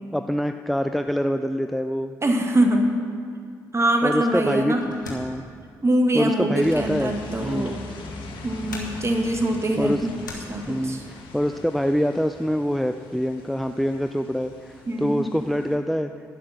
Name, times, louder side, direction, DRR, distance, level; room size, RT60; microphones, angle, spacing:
voice 1, 0.1-2.2 4.0-5.4 6.1-7.2 7.4-7.8 9.8-10.1 10.7-16.1, equal, ahead, 8 dB, 0.4 m, -25 dB
voice 2, 2.2-3.0 3.7-4.8 5.8-7.8 8.4-10.2 10.5-11.0 14.9-15.3, right 1 dB, 30° right, 3 dB, 1.8 m, -23 dB
sound 1, 4.8-11.1, left 3 dB, 85° left, 1.2 m, -43 dB
sound 2, 6.6-15.8, left 3 dB, 60° left, 1.4 m, -41 dB
11.0 x 10.0 x 5.9 m, 2.2 s
figure-of-eight pair, 40°, 10 cm